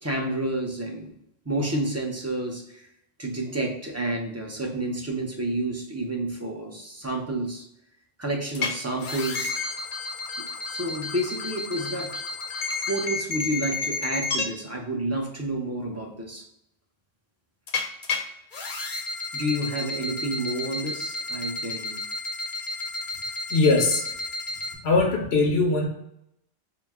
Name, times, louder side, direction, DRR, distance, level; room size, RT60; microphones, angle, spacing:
voice 1, 0.0-1.1 1.5-2.9 3.2-7.6 8.2-9.6 10.4-12.1 12.9-16.4 19.3-22.0, right 1 dB, 20° right, 0 dB, 0.5 m, -30 dB
sound 1, 8.5-8.7 9.0-14.5 17.7-18.2 18.5-24.7, left 3 dB, 55° left, 0.8 m, -31 dB
voice 2, 23.5-24.1 24.8-25.9, left 3 dB, 90° left, 1 dB, 1.1 m, -21 dB
4.6 x 2.1 x 3.5 m, 0.80 s
omnidirectional pair, 1.0 m